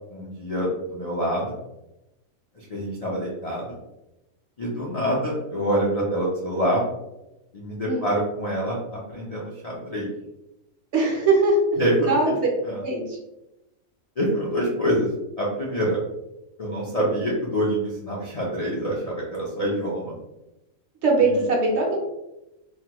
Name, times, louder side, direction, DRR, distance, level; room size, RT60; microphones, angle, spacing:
voice 1, 0.1-1.6 2.5-3.7 4.6-6.9 7.5-10.1 11.8-12.2 12.6-12.8 14.2-15.1 15.4-16.0 16.6-20.1 21.2-21.4, equal, 50° left, -6 dB, 0.4 m, -26 dB
voice 2, 10.9-11.6 12.0-12.3 12.8-13.2 21.0-22.0, right 3 dB, 60° right, -1 dB, 0.9 m, -21 dB
3.0 x 2.2 x 2.9 m, 0.93 s
omnidirectional pair, 1.4 m